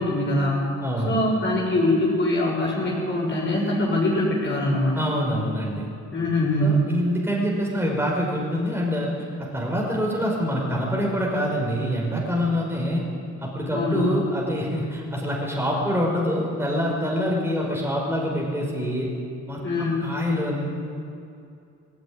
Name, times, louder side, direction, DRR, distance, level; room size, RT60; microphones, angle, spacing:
voice 1, 0.0-0.7 1.0-5.1 6.1-6.9 13.7-14.1 19.6-20.1, left 1 dB, 40° left, -4 dB, 7.6 m, -23 dB
voice 2, 0.8-1.2 4.9-5.9 6.6-9.1 9.4-13.0 13.4-19.1 19.5-20.7, equal, 10° right, -2 dB, 5.7 m, -25 dB
18.5 x 17.0 x 9.9 m, 2.6 s
cardioid pair, 90°, 30 cm